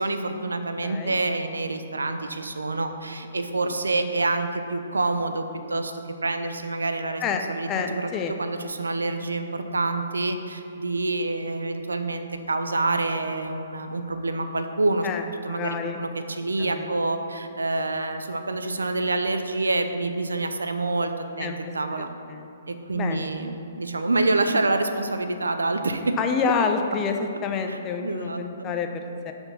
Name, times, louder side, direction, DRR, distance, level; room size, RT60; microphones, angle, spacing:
voice 1, 0.0-5.9 6.2-7.2 7.5-8.1 8.4-15.1 15.4-22.1 22.7-26.1 27.7-28.7, right 2 dB, 80° right, 7 dB, 0.7 m, -27 dB
voice 2, 0.8-1.2 7.2-8.3 15.0-16.0 16.6-16.9 21.4-22.5 22.9-23.3 26.2-29.3, left 5 dB, 25° left, 4 dB, 0.7 m, -28 dB
12.0 x 4.4 x 5.8 m, 2.8 s
figure-of-eight pair, 125°, 0 cm